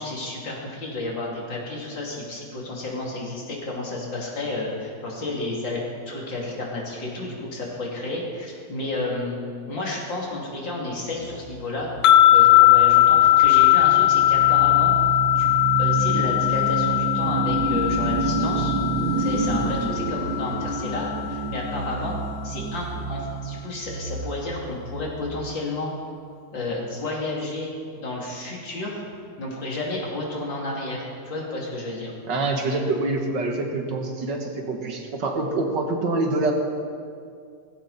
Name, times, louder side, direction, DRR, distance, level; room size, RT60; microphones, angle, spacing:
voice 1, 0.0-9.3 9.6-11.9 12.3-14.9 15.4-15.5 15.8-18.7 19.2-22.2 22.4-25.9 26.5-29.0 29.4-32.1, left 2 dB, 85° left, -3 dB, 3.7 m, -31 dB
sound 1, 11.2-25.3, right 3 dB, 55° right, 1.7 m, -29 dB
sound 2, 12.0-21.3, left 15 dB, 70° left, 1.0 m, -19 dB
voice 2, 32.3-36.5, right 2 dB, 70° right, 2 dB, 2.3 m, -25 dB
17.5 x 15.5 x 4.3 m, 2.3 s
omnidirectional pair, 2.0 m